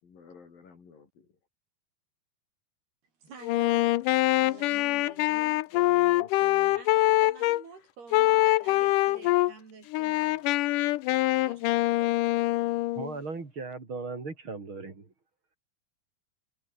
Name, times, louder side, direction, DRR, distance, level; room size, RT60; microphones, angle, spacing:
voice 1, 0.1-1.3 5.7-6.8, left 5 dB, 60° left, 6.2 m, -49 dB
voice 2, 3.2-6.2 6.8-10.5 11.3-13.0, right 5 dB, 75° right, 7.9 m, -50 dB
Wind instrument woodwind instrument, 3.4-7.6 8.1-9.5 9.9-13.1, left 17 dB, 80° left, 1.9 m, -24 dB
voice 3, 12.9-15.1, right 4 dB, 30° right, 4.3 m, -37 dB
omnidirectional pair, 4.6 m